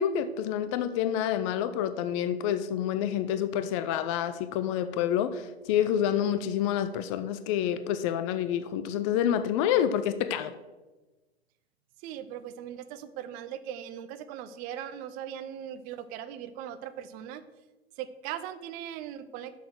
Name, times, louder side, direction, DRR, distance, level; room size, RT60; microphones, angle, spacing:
voice 1, 0.0-10.5, left 10 dB, 30° left, 11 dB, 0.4 m, -28 dB
voice 2, 12.0-17.4 18.0-19.6, right 10 dB, 25° right, 13 dB, 0.6 m, -39 dB
6.6 x 6.5 x 6.3 m, 1.2 s
figure-of-eight pair, 110°, 31 cm